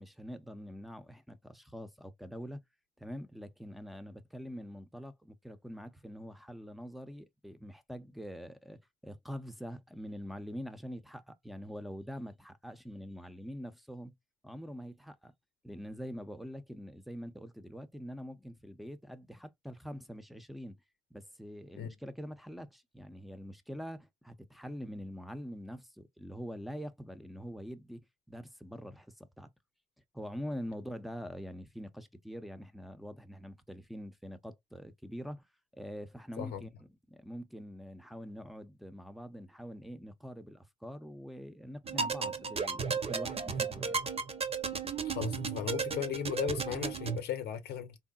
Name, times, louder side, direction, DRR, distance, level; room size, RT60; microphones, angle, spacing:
voice 1, 0.0-2.6 3.0-14.1 14.4-15.3 15.6-20.8 21.1-28.0 28.3-29.5 30.1-35.5 35.7-36.7 37.1-44.0, equal, ahead, 0.8 m, -44 dB
sound 1, 41.8-47.2, right 5 dB, 35° right, 0.8 m, -34 dB
voice 2, 45.0-48.0, left 9 dB, 80° left, 0.8 m, -36 dB
3.6 x 2.7 x 2.3 m
supercardioid pair, 60°, 17 cm